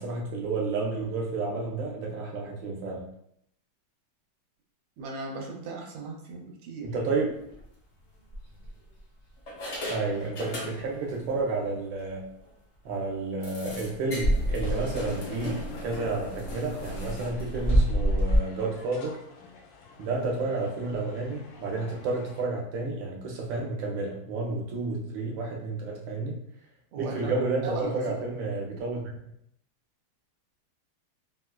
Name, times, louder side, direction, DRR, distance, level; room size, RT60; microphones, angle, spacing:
voice 1, 0.0-3.1 6.9-7.5 9.9-12.3 12.8-19.2 20.0-26.4 27.0-29.0, right 3 dB, 70° right, -1 dB, 1.3 m, -31 dB
voice 2, 5.0-6.9 26.9-27.3 27.6-28.1, right 3 dB, 85° right, 0 dB, 1.5 m, -37 dB
sound 1, 7.4-7.6 8.3-9.0 9.5-11.1 11.4-11.6 12.0-12.1 12.4-12.5 13.4-18.4, equal, 60° left, 0.8 m, -30 dB
sound 2, 15.5-22.4, left 4 dB, 80° left, 1.4 m, -51 dB
4.1 x 2.2 x 2.2 m, 0.73 s
omnidirectional pair, 2.3 m